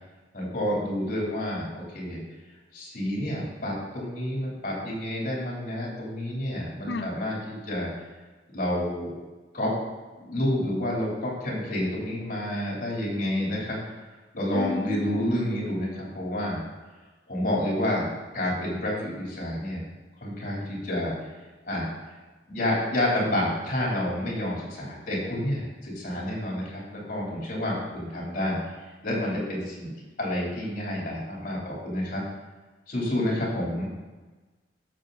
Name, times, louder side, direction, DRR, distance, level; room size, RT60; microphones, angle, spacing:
voice 1, 0.3-2.2 2.7-7.9 8.5-9.1 9.5-9.7 10.2-13.8 14.3-16.6 17.3-19.8 20.2-21.1 21.7-21.9 22.5-28.6 29.0-29.9 30.2-32.2 32.9-33.9, left 1 dB, 50° left, -4 dB, 3.8 m, -29 dB
voice 2, 14.5-15.4, left 3 dB, 75° left, 11 dB, 0.6 m, -32 dB
13.5 x 7.0 x 4.1 m, 1.3 s
head